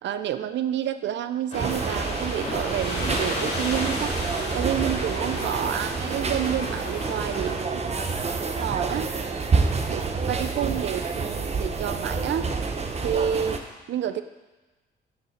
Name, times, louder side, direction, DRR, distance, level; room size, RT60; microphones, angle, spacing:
voice 1, 0.0-4.1 4.5-8.0 8.6-9.1 9.9-12.5 13.0-13.6 13.9-14.2, right 10 dB, 65° right, 11 dB, 0.5 m, -29 dB
sound 1, 1.5-7.6, left 1 dB, 35° left, 3.0 m, -33 dB
sound 2, 1.5-13.6, right 4 dB, 35° right, 0.8 m, -28 dB
6.7 x 5.3 x 6.4 m, 1.2 s
cardioid pair, 90°, 20 cm